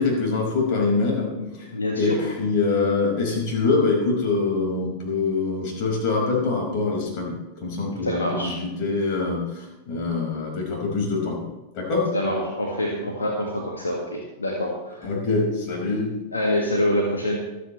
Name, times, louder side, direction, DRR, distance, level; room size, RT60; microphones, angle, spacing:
voice 1, 0.0-1.3 1.6-1.7 2.0-2.1 2.4-7.3 7.6-8.5 8.8-12.0 15.0-16.1, left 3 dB, 45° left, 0 dB, 5.2 m, -24 dB
voice 2, 1.4-2.2 8.0-8.6 12.1-15.1 16.3-17.4, left 1 dB, 75° left, 0 dB, 1.9 m, -26 dB
25.5 x 8.8 x 3.3 m, 1.0 s
figure-of-eight pair, 90°, 0 cm